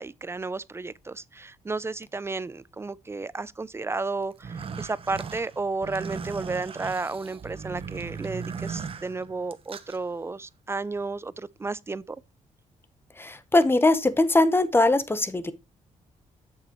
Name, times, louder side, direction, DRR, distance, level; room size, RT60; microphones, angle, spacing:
voice 1, 0.0-12.2, right 3 dB, 20° right, 0.4 m, -33 dB
sound 1, 4.3-10.0, right 6 dB, 45° right, 0.9 m, -37 dB
voice 2, 13.2-15.5, left 2 dB, 15° left, 0.9 m, -21 dB
7.8 x 7.2 x 3.0 m
cardioid pair, 95°, 14 cm